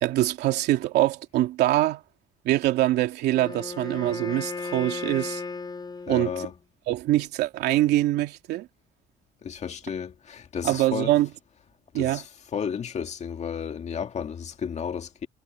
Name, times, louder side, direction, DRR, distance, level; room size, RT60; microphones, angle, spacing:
voice 1, 0.0-2.0 2.4-5.4 6.1-6.5 6.9-8.7 10.6-11.3 11.9-12.2, right 15 dB, 80° right, 2.8 m, -24 dB
Wind instrument woodwind instrument, 3.3-6.6, left 4 dB, 25° left, 4.0 m, -35 dB
voice 2, 6.1-6.5 9.4-11.1 11.9-12.2 12.5-15.3, left 7 dB, 40° left, 2.1 m, -33 dB
cardioid pair, 110°, 17 cm